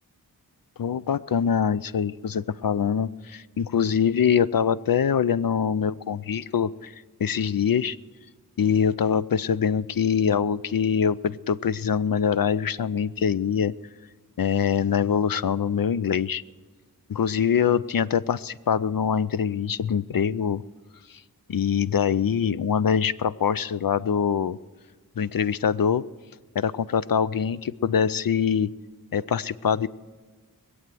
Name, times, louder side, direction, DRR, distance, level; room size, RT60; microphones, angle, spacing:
voice 1, 0.8-8.0 8.6-13.7 14.4-16.4 17.1-20.6 21.1-21.2 21.5-24.6 25.2-26.0 26.6-28.7 29.1-29.9, left 7 dB, 65° left, 16 dB, 0.5 m, -24 dB
21.0 x 8.1 x 7.6 m, 1.5 s
wide cardioid pair, 45°, 38 cm